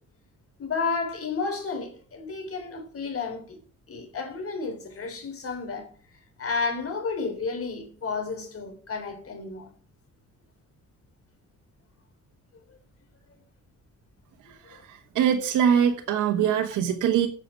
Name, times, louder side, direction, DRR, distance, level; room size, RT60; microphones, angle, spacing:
voice 1, 0.6-3.6 3.9-5.9 6.4-9.7, left 4 dB, 50° left, 3.7 m, -31 dB
voice 2, 14.7-17.3, right 8 dB, 85° right, 1.3 m, -23 dB
8.7 x 6.8 x 8.3 m
cardioid pair, 90°, 30 cm